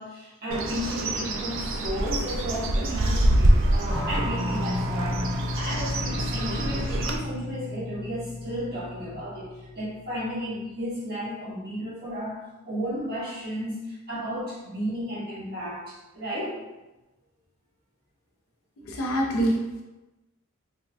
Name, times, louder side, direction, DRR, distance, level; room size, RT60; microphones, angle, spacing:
voice 1, 0.0-9.5 9.7-16.6, equal, 50° right, -8 dB, 1.3 m, -33 dB
Bird, 0.5-7.2, right 1 dB, 65° right, 0.4 m, -26 dB
sound 1, 3.9-10.2, left 2 dB, 5° left, 0.5 m, -32 dB
voice 2, 18.8-19.8, right 1 dB, 80° left, 0 dB, 0.4 m, -26 dB
3.2 x 2.7 x 2.4 m, 1.0 s
head